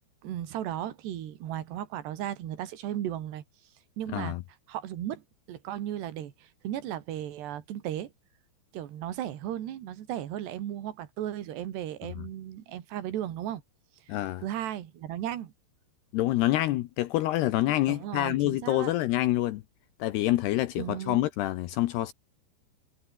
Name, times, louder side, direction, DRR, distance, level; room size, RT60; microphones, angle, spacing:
voice 1, 0.2-3.4 4.0-4.4 4.7-8.1 8.7-13.6 14.1-15.5 17.9-18.9 20.8-21.2, right 11 dB, 70° right, 4.1 m, -35 dB
voice 2, 4.1-4.4 14.1-14.4 16.1-19.6 20.0-22.1, left 16 dB, 75° left, 2.7 m, -27 dB
omnidirectional pair, 5.2 m